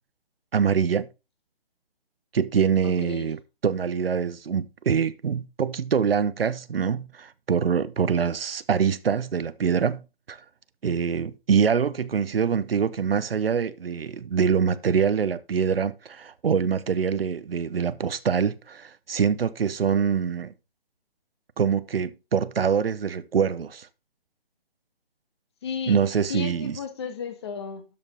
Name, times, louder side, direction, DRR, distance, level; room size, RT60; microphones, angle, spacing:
voice 1, 0.5-1.1 2.3-10.0 10.3-10.4 10.8-20.5 21.6-23.9 25.9-26.8, right 6 dB, 70° right, 0.8 m, -24 dB
voice 2, 2.8-3.3 25.6-26.0 26.3-27.8, left 6 dB, 25° left, 1.2 m, -34 dB
12.5 x 5.3 x 3.8 m
hypercardioid pair, 160°, 30 cm